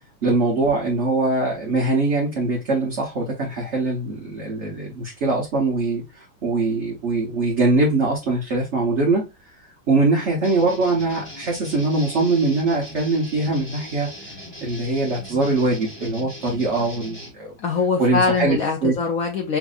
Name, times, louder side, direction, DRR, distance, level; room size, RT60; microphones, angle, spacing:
voice 1, 0.2-9.3 9.9-14.1 14.6-17.5 18.0-18.9, right 3 dB, 45° right, 1.0 m, -22 dB
sound 1, 10.4-17.3, equal, 10° left, 1.0 m, -39 dB
voice 2, 17.6-19.6, left 5 dB, 75° left, 0.8 m, -22 dB
6.1 x 2.6 x 2.4 m
omnidirectional pair, 2.1 m